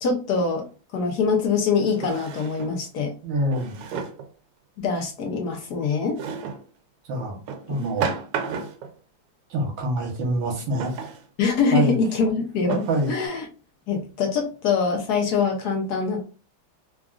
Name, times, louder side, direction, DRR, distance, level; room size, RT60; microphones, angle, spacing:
voice 1, 0.0-0.6 0.9-3.1 4.8-6.2 7.7-7.8 11.4-13.5 13.9-16.2, left 5 dB, 70° left, 2 dB, 0.9 m, -24 dB
Drawer open or close, 0.6-0.7 1.9-2.8 3.5-4.3 6.2-6.7 7.5-8.9 10.8-11.3 11.9-12.0 12.7-13.3, right 6 dB, 90° right, 1.5 m, -32 dB
voice 2, 3.2-3.8 7.1-7.4 7.7-8.2 9.5-10.9 11.7-11.9 12.9-13.1, right 1 dB, 65° right, 0 dB, 1.7 m, -25 dB
3.8 x 2.4 x 2.3 m, 0.35 s
omnidirectional pair, 2.3 m